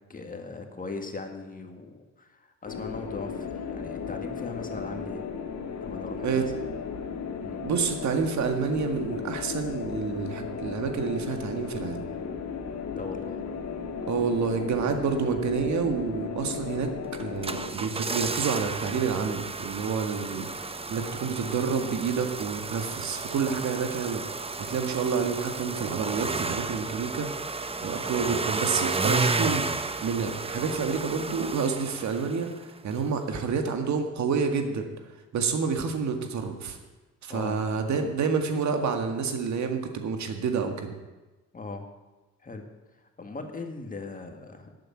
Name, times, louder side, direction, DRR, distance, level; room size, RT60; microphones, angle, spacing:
voice 1, 0.1-5.2 5.8-6.5 7.4-7.7 12.9-13.4 37.3-37.6 41.5-41.9 42.4-42.7 43.0-44.7, left 3 dB, 25° left, 4 dB, 2.0 m, -39 dB
sound 1, 2.7-17.7, left 6 dB, 60° left, 2.0 m, -35 dB
voice 2, 7.6-12.0 14.1-16.9 17.2-34.9 35.3-36.8 37.2-41.0, right 5 dB, 65° right, 5 dB, 1.9 m, -29 dB
sound 2, 17.1-32.6 32.9-33.0, right 3 dB, 20° right, 0.8 m, -32 dB
12.0 x 8.6 x 8.8 m, 1.2 s
cardioid pair, 90°, 30 cm